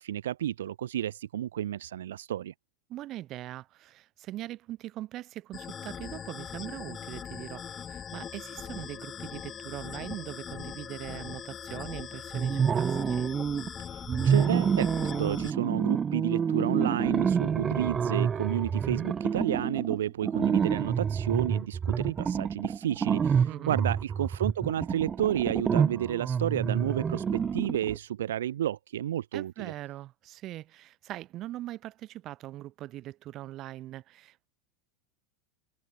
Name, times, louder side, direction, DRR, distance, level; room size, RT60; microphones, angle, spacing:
voice 1, 0.0-2.5 13.8-29.7, right 11 dB, 85° right, 1.1 m, -31 dB
voice 2, 2.9-13.3 23.4-23.8 29.3-34.5, right 14 dB, 40° right, 6.0 m, -41 dB
sound 1, 5.5-15.5, left 8 dB, 25° left, 1.2 m, -41 dB
sound 2, 12.3-13.7 14.1-28.0, right 7 dB, 25° right, 2.5 m, -28 dB
hypercardioid pair, 115°, 0 cm